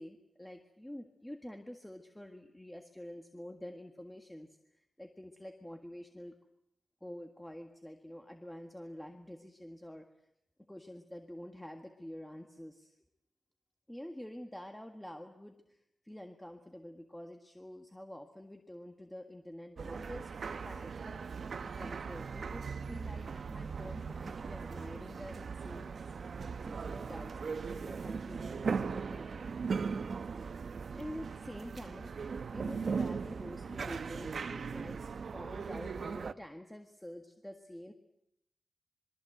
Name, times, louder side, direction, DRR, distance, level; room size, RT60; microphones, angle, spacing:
voice 1, 0.0-6.4 7.0-10.1 10.7-13.0 13.9-15.8 16.0-21.2 21.6-25.9 26.6-29.4 30.9-35.0 35.3-37.9, left 1 dB, 5° left, 5 dB, 1.7 m, -48 dB
sound 1, 19.8-36.3, right 5 dB, 60° right, 0.9 m, -39 dB
27.5 x 23.0 x 8.0 m, 0.79 s
wide cardioid pair, 165°, 0 cm